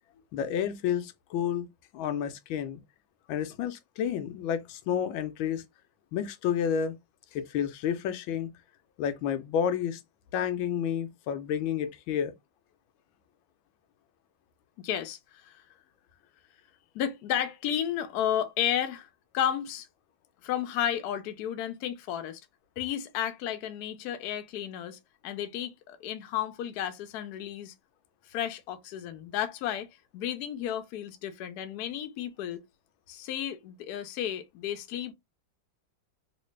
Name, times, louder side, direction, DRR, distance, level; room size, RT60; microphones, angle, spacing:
voice 1, 0.3-1.7 1.9-2.8 3.3-5.7 6.1-7.0 7.3-8.5 9.0-10.0 10.3-12.3, left 8 dB, 85° left, 1.4 m, -30 dB
voice 2, 14.8-15.6 16.9-19.1 19.3-19.9 20.4-22.4 22.8-27.7 28.3-32.6 33.1-35.1, left 10 dB, 70° left, 1.0 m, -33 dB
3.2 x 2.8 x 3.1 m
omnidirectional pair, 2.1 m